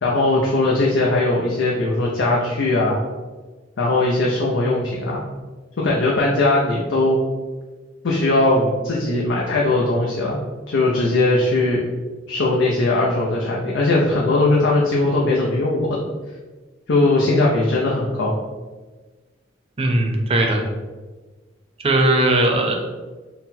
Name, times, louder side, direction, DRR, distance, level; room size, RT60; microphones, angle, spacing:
voice 1, 0.0-3.0 3.8-5.2 5.8-7.2 8.0-10.4 10.7-11.8 12.3-16.0 16.9-18.4, left 2 dB, 80° left, -3 dB, 0.6 m, -19 dB
voice 2, 19.8-20.6 21.8-22.7, right 1 dB, 30° right, 2 dB, 0.6 m, -18 dB
3.9 x 2.1 x 4.1 m, 1.3 s
head